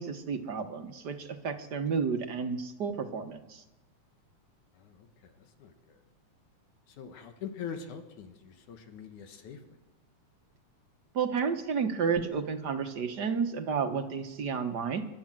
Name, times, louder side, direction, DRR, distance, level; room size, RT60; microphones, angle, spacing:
voice 1, 0.0-3.6 11.1-15.0, right 6 dB, 50° right, 6 dB, 1.3 m, -31 dB
voice 2, 4.7-6.0 6.9-9.6, left 7 dB, 80° left, 6 dB, 2.9 m, -44 dB
29.5 x 12.0 x 7.6 m, 1.0 s
omnidirectional pair, 3.4 m